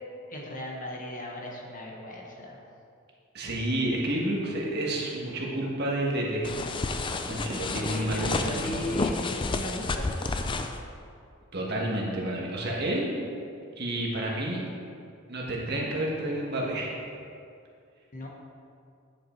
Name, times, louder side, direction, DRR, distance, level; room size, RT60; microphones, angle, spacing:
voice 1, 0.3-2.6 7.8-10.1 18.1-18.3, left 1 dB, 40° left, -1 dB, 1.0 m, -36 dB
voice 2, 3.3-6.5 7.2-8.7 11.5-13.1 13.8-14.6 15.3-17.0, right 1 dB, 50° right, -3 dB, 1.5 m, -30 dB
sound 1, 6.4-10.8, left 3 dB, 25° left, 0.4 m, -30 dB
9.5 x 5.7 x 4.4 m, 2.4 s
head